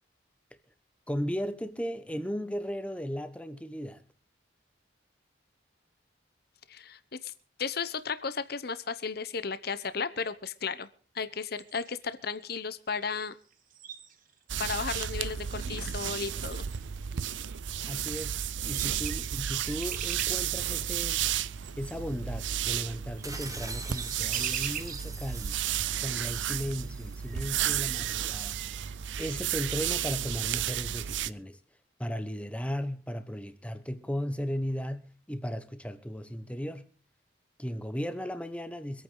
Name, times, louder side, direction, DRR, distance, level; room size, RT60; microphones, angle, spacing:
voice 1, 1.1-4.0 17.9-21.3 21.8-25.6 26.0-28.6 29.2-31.6 32.0-36.9 37.6-39.0, equal, 5° left, 1.1 m, -36 dB
voice 2, 6.7-7.3 7.6-10.9 11.1-13.3 14.6-16.6, left 5 dB, 55° left, 0.9 m, -34 dB
sound 1, 11.6-12.1 13.0-13.2 13.4-14.5 15.2-15.3 16.1-16.2 16.4-17.1 18.2-18.3 18.6-20.4 21.6-25.1 25.7-25.8 26.9-27.0 27.2-28.9, right 8 dB, 45° right, 1.4 m, -44 dB
sound 2, 14.5-31.3, right 10 dB, 75° right, 0.5 m, -33 dB
sound 3, 23.2-27.9, right 4 dB, 20° right, 1.6 m, -43 dB
25.0 x 9.0 x 3.9 m
head